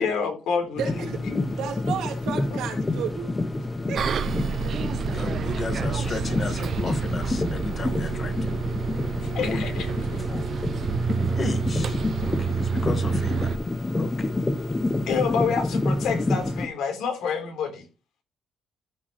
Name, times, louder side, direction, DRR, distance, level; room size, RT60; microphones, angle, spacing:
voice 1, 0.0-1.4 2.5-2.6 9.3-10.2 15.1-17.8, left 6 dB, 85° left, 4.1 m, -28 dB
sound 1, 0.8-16.7, left 2 dB, 20° left, 0.9 m, -28 dB
voice 2, 0.8-1.2 1.5-3.3 3.9-4.2 4.6-4.7, right 7 dB, 90° right, 3.2 m, -32 dB
Bus, 4.0-13.6, right 6 dB, 55° right, 0.7 m, -28 dB
voice 3, 4.7-8.5 9.3-9.6 10.3-10.5 11.4-13.5 14.0-14.3, left 4 dB, 35° left, 1.6 m, -35 dB
13.5 x 6.2 x 3.2 m
cardioid pair, 110°, 0 cm